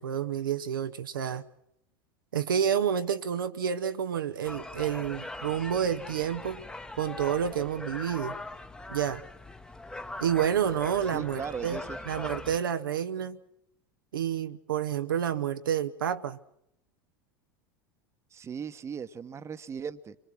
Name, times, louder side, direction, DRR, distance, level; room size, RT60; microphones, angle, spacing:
voice 1, 0.0-1.4 2.3-6.6 7.0-8.4 8.9-9.2 10.2-11.8 12.1-13.4 14.1-16.4, right 8 dB, 75° right, 0.8 m, -29 dB
sound 1, 4.4-12.6, left 2 dB, 5° left, 1.0 m, -41 dB
voice 2, 11.1-12.0 18.3-20.2, right 7 dB, 25° right, 1.1 m, -38 dB
26.5 x 23.0 x 6.1 m
figure-of-eight pair, 80°, 11 cm